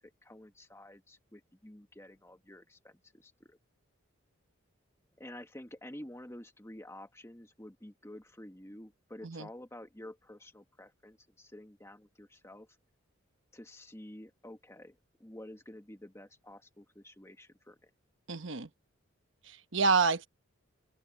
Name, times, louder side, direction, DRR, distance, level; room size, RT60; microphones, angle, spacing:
voice 1, 0.2-3.6 5.2-12.7 13.5-17.9, left 1 dB, 15° left, 1.3 m, -50 dB
voice 2, 18.3-18.7 19.5-20.3, right 4 dB, 65° right, 1.1 m, -28 dB
open air
head